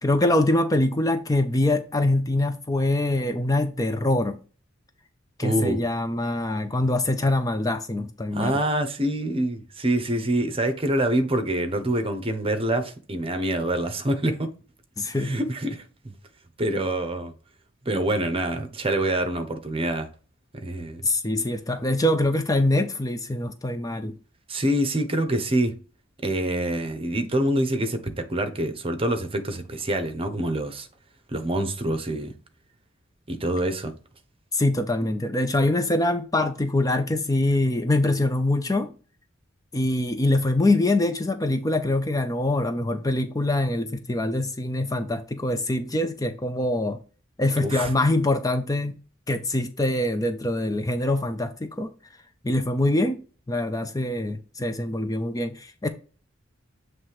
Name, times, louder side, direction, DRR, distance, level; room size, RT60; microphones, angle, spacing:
voice 1, 0.0-4.4 5.4-8.6 15.0-15.4 21.0-24.2 34.5-38.9 39.7-47.0 47.4-49.0 49.3-51.9 52.4-53.2 53.5-55.9, left 1 dB, 20° left, 0.5 m, -24 dB
voice 2, 5.4-5.8 8.3-14.5 15.2-16.1 16.6-17.3 17.8-20.1 20.5-21.1 24.5-25.7 26.2-30.9 31.3-32.3 33.3-33.9 47.6-47.9, right 1 dB, 30° right, 1.0 m, -26 dB
7.5 x 3.3 x 4.8 m
head